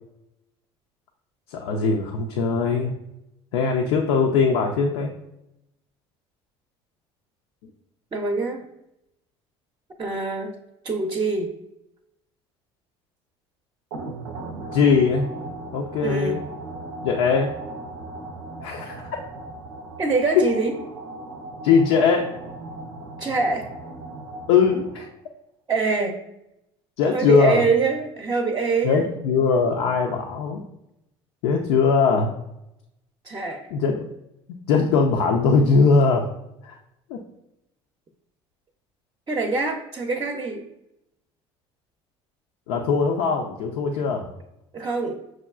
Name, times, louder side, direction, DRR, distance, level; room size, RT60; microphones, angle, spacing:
voice 1, 1.5-2.9 3.5-5.1 14.7-15.3 15.7-16.4 17.0-17.6 18.6-19.1 20.4-20.5 21.6-22.3 24.5-25.1 27.0-27.6 28.8-30.6 31.4-32.3 33.7-34.1 34.7-36.3 36.6-36.8 37.1-37.2 42.7-44.3, left 5 dB, 75° left, 1 dB, 0.5 m, -20 dB
voice 2, 8.1-8.6 10.0-10.5 10.8-11.5 16.0-16.4 20.0-20.8 23.2-23.7 25.7-26.2 27.1-29.0 33.2-33.7 39.3-40.7 44.7-45.2, right 4 dB, 30° right, 2 dB, 0.6 m, -24 dB
sound 1, 13.9-25.3, right 2 dB, 85° right, 0.5 m, -37 dB
6.0 x 2.3 x 2.3 m, 0.85 s
hypercardioid pair, 75°, 13 cm